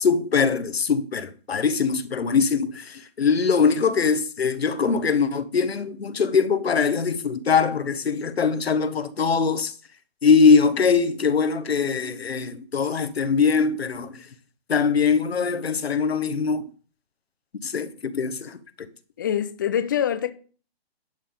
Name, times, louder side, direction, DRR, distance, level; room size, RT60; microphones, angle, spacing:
voice 1, 0.0-9.7 10.2-14.2 14.7-16.6 17.6-18.6, left 5 dB, 75° left, 1.2 m, -22 dB
voice 2, 19.2-20.3, left 9 dB, 20° left, 0.4 m, -24 dB
11.0 x 5.5 x 5.1 m
figure-of-eight pair, 140°, 32 cm